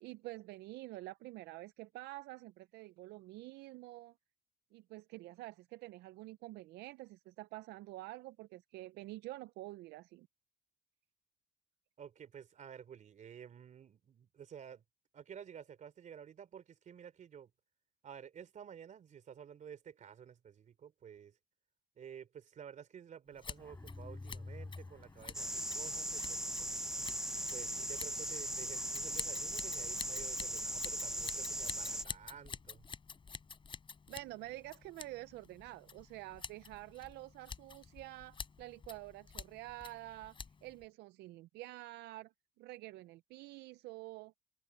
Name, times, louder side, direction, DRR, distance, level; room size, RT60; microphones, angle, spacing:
voice 1, 0.0-4.1 4.7-10.3 34.1-40.4 40.6-44.3, right 18 dB, 85° right, 0.5 m, -48 dB
voice 2, 12.0-14.8 15.1-17.5 18.0-21.4 22.0-26.7 27.5-32.9, right 8 dB, 45° right, 3.5 m, -52 dB
Scissors, 23.4-40.8, left 5 dB, 30° left, 4.2 m, -49 dB
Mechanisms, 23.6-30.3, left 2 dB, 15° left, 5.3 m, -53 dB
sound 1, 25.3-32.0, right 1 dB, 5° right, 1.0 m, -39 dB
cardioid pair, 110°, 17 cm